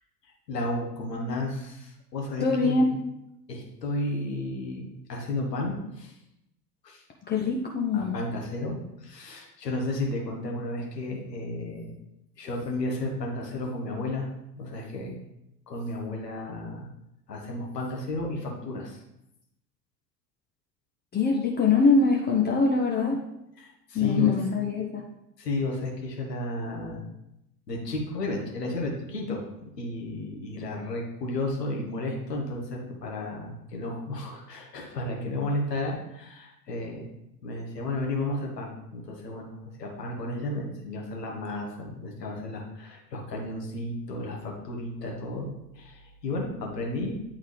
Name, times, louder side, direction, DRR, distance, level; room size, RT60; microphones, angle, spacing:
voice 1, 0.5-2.7 3.5-6.2 6.8-7.0 7.9-11.9 12.4-14.3 14.6-15.2 15.7-16.9 17.3-19.0 23.6-24.4 25.4-27.0 27.7-37.1 37.4-45.5 45.7-47.2, left 2 dB, 80° left, 0 dB, 1.3 m, -33 dB
voice 2, 2.4-3.0 7.3-8.1 21.1-23.2 23.9-25.0, left 4 dB, 20° left, 0 dB, 0.6 m, -23 dB
8.6 x 3.7 x 3.2 m, 0.85 s
figure-of-eight pair, 70°, 48 cm